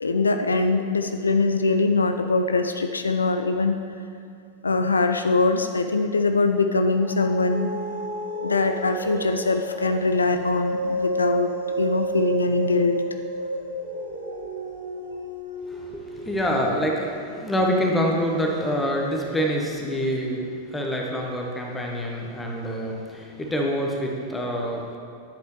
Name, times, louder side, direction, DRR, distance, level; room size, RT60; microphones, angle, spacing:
voice 1, 0.0-3.8 4.6-7.7 8.4-13.0, left 3 dB, 75° left, 7 dB, 0.4 m, -22 dB
sound 1, 6.9-19.7, right 2 dB, 80° right, 1.6 m, -32 dB
voice 2, 15.7-25.0, equal, 10° left, -1 dB, 1.3 m, -26 dB
10.5 x 7.8 x 3.4 m, 2.5 s
figure-of-eight pair, 90°, 0 cm